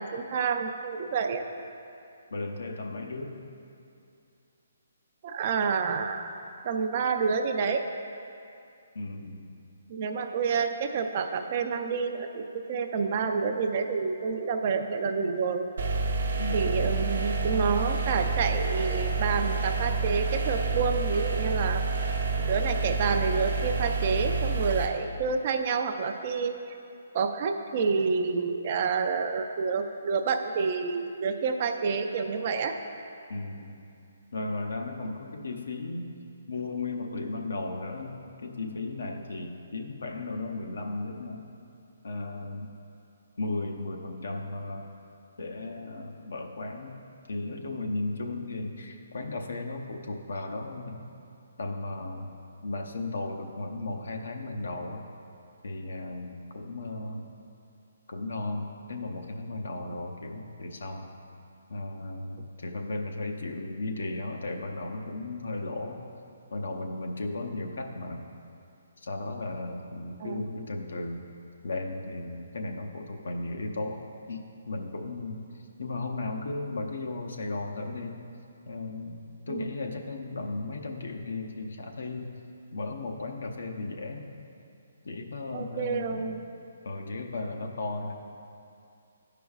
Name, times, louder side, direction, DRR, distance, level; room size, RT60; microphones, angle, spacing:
voice 1, 0.0-1.4 5.2-6.3 6.6-7.8 9.9-15.7 16.5-21.8 22.4-26.8 27.1-32.7 70.2-70.5 79.5-79.7 85.5-86.4, right 5 dB, 35° right, 5 dB, 0.4 m, -28 dB
voice 2, 2.3-3.4 8.9-9.5 16.4-16.9 33.3-33.7 34.3-36.2 36.5-38.2 38.4-41.5 42.0-42.7 43.4-44.9 45.4-46.9 47.3-51.1 51.6-52.3 52.6-55.1 55.6-57.3 58.1-61.1 61.7-66.0 66.5-68.2 69.0-71.3 71.6-75.4 75.8-78.2 78.7-82.3 82.7-84.3 85.0-86.3 86.8-88.1, left 2 dB, 80° left, 3 dB, 0.7 m, -35 dB
sound 1, 15.8-24.9, right 3 dB, 65° right, 0.8 m, -28 dB
12.0 x 5.0 x 2.4 m, 2.6 s
hypercardioid pair, 165°, 0 cm